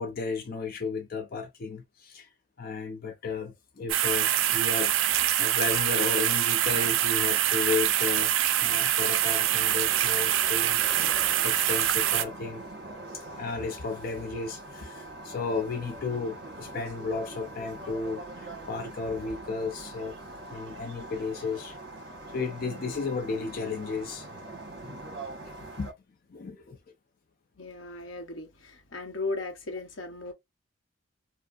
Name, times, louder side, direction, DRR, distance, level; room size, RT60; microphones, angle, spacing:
voice 1, 0.0-2.3 2.6-8.3 8.6-11.0 11.4-12.6 13.1-20.2 20.5-21.8 22.3-24.3 24.8-25.0 25.8-25.9 26.3-26.8, left 4 dB, 50° left, 0.5 m, -34 dB
sound 1, 3.9-12.2, right 12 dB, 80° right, 0.4 m, -25 dB
sound 2, 9.2-25.9, right 1 dB, 60° right, 1.4 m, -43 dB
voice 2, 27.6-30.3, left 3 dB, 80° left, 1.0 m, -36 dB
4.6 x 2.1 x 2.4 m
head